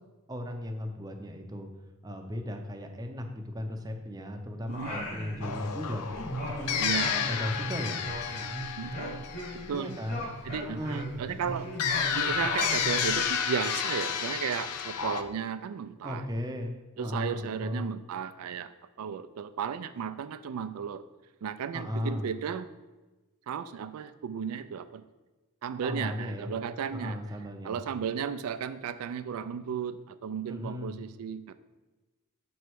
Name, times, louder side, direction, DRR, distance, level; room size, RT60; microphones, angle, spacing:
voice 1, 0.3-1.7 2.0-6.1 6.5-6.8 7.1-8.0 9.7-10.3 10.7-11.1 16.0-17.9 21.7-22.2 25.8-26.5 26.9-27.8 30.5-31.0, left 1 dB, 15° right, 4 dB, 0.5 m, -36 dB
Singing, 4.7-5.8 6.1-9.7 10.0-13.3, equal, 45° left, 1.7 m, -37 dB
voice 2, 4.7-5.1 6.7-7.1 8.8-9.2 9.5-10.0 10.4-11.7 12.1-16.2 17.0-18.7 19.0-21.0 21.4-22.7 23.5-25.0 25.6-27.2 27.6-31.5, right 7 dB, 75° right, 12 dB, 0.3 m, -34 dB
sound 1, 5.4-10.2 11.8-15.2, left 7 dB, 85° left, 0.5 m, -31 dB
6.7 x 3.1 x 4.6 m, 1.2 s
head